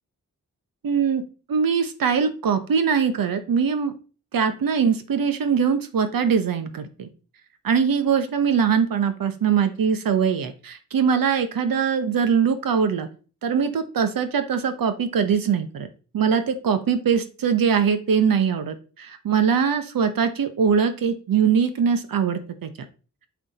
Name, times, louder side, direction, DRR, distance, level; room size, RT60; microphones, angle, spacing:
voice 1, 0.8-1.2 1.5-3.9 4.3-7.1 7.6-13.1 13.4-15.9 16.1-22.7, right 6 dB, 75° right, 10 dB, 1.1 m, -22 dB
8.8 x 4.9 x 4.2 m, 0.38 s
supercardioid pair, 40°, 35 cm